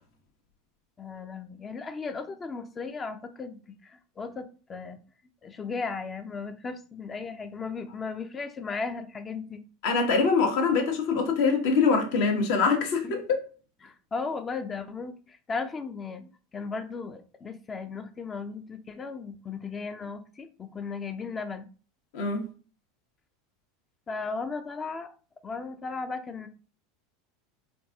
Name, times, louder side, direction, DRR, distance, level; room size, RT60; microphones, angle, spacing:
voice 1, 1.0-5.0 5.4-9.6 13.0-13.2 13.8-21.7 24.1-25.1 25.4-26.5, left 4 dB, 25° left, 0.5 m, -36 dB
voice 2, 9.8-13.4 22.1-22.5, left 4 dB, 60° left, 1.1 m, -24 dB
3.8 x 2.6 x 3.6 m
hypercardioid pair, 80°, 0 cm